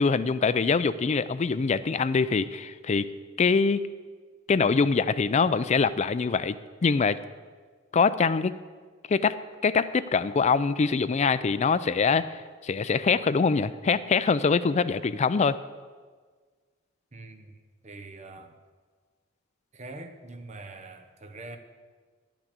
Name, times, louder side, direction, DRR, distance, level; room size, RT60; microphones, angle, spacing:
voice 1, 0.0-3.1 3.4-3.9 4.5-6.6 6.8-7.2 7.9-8.6 9.1-9.4 9.6-15.6, left 5 dB, 35° left, 0.4 m, -24 dB
voice 2, 17.1-17.6 17.8-18.5 19.7-21.6, right 2 dB, 35° right, 0.9 m, -43 dB
10.5 x 6.1 x 8.3 m
head